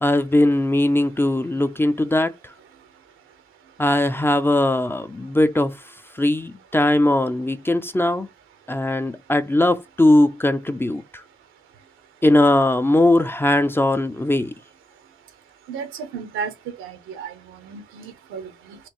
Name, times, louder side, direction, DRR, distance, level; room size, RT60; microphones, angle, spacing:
voice 1, 0.0-2.3 3.8-5.7 6.2-8.3 8.7-11.0 12.2-14.5, left 1 dB, 10° left, 0.4 m, -19 dB
voice 2, 15.7-16.5 16.8-18.8, right 6 dB, 85° right, 1.0 m, -34 dB
4.3 x 2.5 x 2.9 m
cardioid pair, 90°, 20 cm